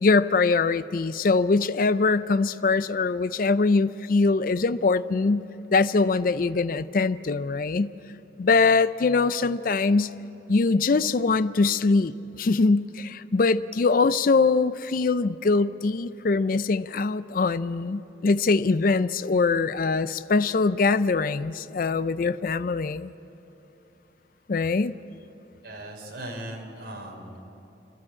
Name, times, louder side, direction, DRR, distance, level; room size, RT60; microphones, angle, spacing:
voice 1, 0.0-5.4 5.7-7.9 8.4-10.1 10.5-23.1 24.5-24.9, left 4 dB, 50° left, 14 dB, 0.4 m, -23 dB
voice 2, 25.6-27.4, right 1 dB, 65° right, 1 dB, 3.7 m, -38 dB
29.0 x 12.5 x 8.6 m, 2.9 s
head